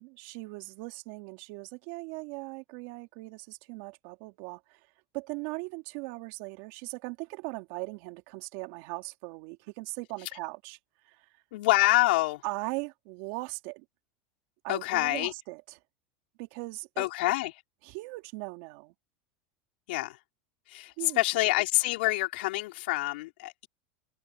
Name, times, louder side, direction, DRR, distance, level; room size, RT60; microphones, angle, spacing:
voice 1, 0.0-4.8 5.1-10.8 11.1-11.3 12.4-13.8 14.6-15.6 16.4-17.1 17.8-18.9 21.0-21.2, right 26 dB, 60° right, 3.8 m, -39 dB
voice 2, 11.5-12.4 14.7-15.3 17.0-17.6 19.9-20.2 20.7-23.7, left 20 dB, 75° left, 4.5 m, -27 dB
supercardioid pair, 145°, 6 cm